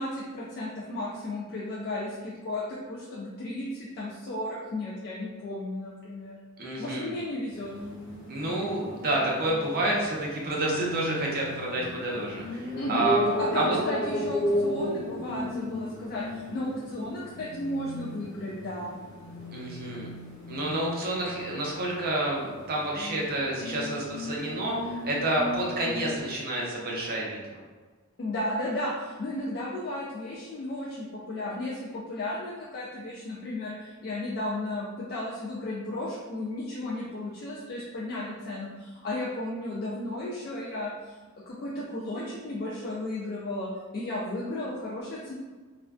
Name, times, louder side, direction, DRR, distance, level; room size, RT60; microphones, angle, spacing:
voice 1, 0.0-6.4 6.8-7.7 12.8-19.0 28.2-41.2 41.5-45.3, left 1 dB, 45° left, -6 dB, 0.3 m, -34 dB
voice 2, 6.6-7.1 8.3-13.3 13.5-13.8 19.5-20.1 20.5-27.4, right 1 dB, 45° right, -3 dB, 0.6 m, -29 dB
sound 1, 7.5-26.2, left 1 dB, 60° left, 1.4 m, -35 dB
2.4 x 2.2 x 2.3 m, 1.4 s
head